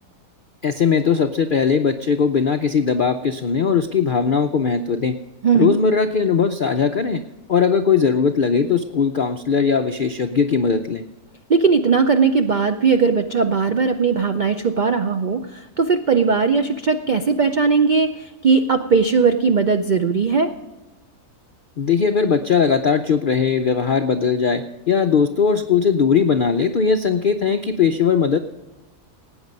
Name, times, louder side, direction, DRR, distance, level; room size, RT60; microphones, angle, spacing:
voice 1, 0.6-5.2 5.5-7.2 7.5-11.0 21.8-28.4, left 6 dB, 70° left, 7 dB, 0.4 m, -19 dB
voice 2, 5.4-5.7 11.5-20.5, right 5 dB, 75° right, 7 dB, 0.4 m, -18 dB
18.5 x 8.9 x 5.2 m, 1.1 s
omnidirectional pair, 1.6 m